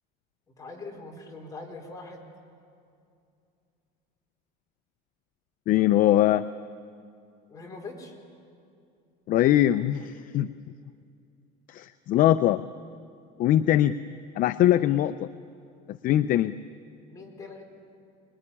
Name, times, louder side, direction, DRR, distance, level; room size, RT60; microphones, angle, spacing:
voice 1, 0.6-2.3 7.5-8.1 17.1-17.6, left 3 dB, 15° left, 0 dB, 4.4 m, -42 dB
voice 2, 5.7-6.5 9.3-10.5 11.7-12.6 13.4-13.9 14.4-15.3 15.9-16.5, left 13 dB, 45° left, 12 dB, 0.5 m, -22 dB
25.0 x 21.0 x 10.0 m, 2.5 s
cardioid pair, 145°, 19 cm